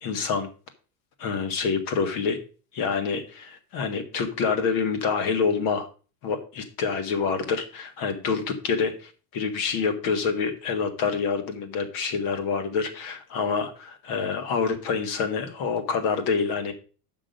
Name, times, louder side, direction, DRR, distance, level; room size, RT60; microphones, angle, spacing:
voice 1, 0.0-0.5 1.2-2.4 2.7-5.9 6.2-16.7, left 5 dB, 45° left, 8 dB, 1.7 m, -27 dB
8.8 x 6.2 x 5.2 m, 0.36 s
supercardioid pair, 155°, 48 cm